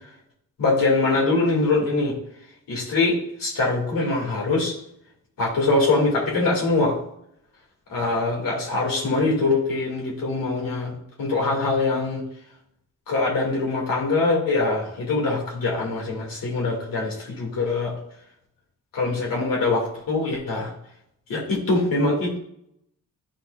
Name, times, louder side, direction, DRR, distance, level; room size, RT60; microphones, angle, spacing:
voice 1, 0.6-2.1 2.7-4.7 5.4-7.0 7.9-12.2 13.1-17.9 18.9-20.7 21.3-22.4, left 3 dB, 85° left, -3 dB, 2.5 m, -23 dB
11.5 x 4.4 x 2.5 m, 0.74 s
wide cardioid pair, 105°, 33 cm